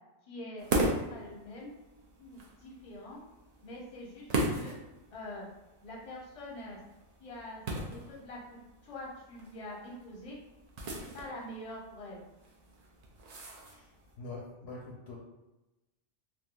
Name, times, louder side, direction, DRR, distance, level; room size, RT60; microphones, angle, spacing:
voice 1, 0.3-0.8 1.1-1.7 2.2-3.2 3.6-4.8 5.1-5.5 5.8-6.8 7.2-10.4 11.1-12.2, left 1 dB, 35° left, -3 dB, 0.7 m, -45 dB
sound 1, 0.6-14.1, right 1 dB, 50° right, 0.5 m, -38 dB
voice 2, 14.2-15.2, left 3 dB, 70° left, -2 dB, 0.8 m, -44 dB
3.5 x 2.7 x 2.2 m, 1.0 s
omnidirectional pair, 1.2 m